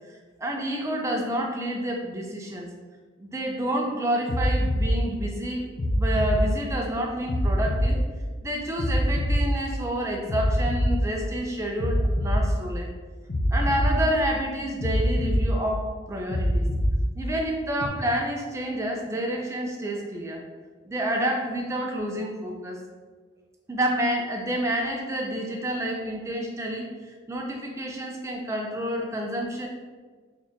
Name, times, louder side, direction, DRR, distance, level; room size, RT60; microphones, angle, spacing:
voice 1, 0.4-2.7 3.2-5.7 5.9-8.0 8.4-12.9 13.5-16.7 17.2-20.4 20.9-22.8 23.7-26.9 27.3-29.7, right 1 dB, 15° right, 0 dB, 0.4 m, -29 dB
sound 1, 4.3-4.9 5.8-6.4 7.3-7.9 8.8-9.4 10.3-10.9 11.8-12.4 13.3-13.9 14.8-15.4 16.3-16.9 17.8-17.9, left 1 dB, 55° left, 0.6 m, -24 dB
4.0 x 3.4 x 2.7 m, 1.4 s
head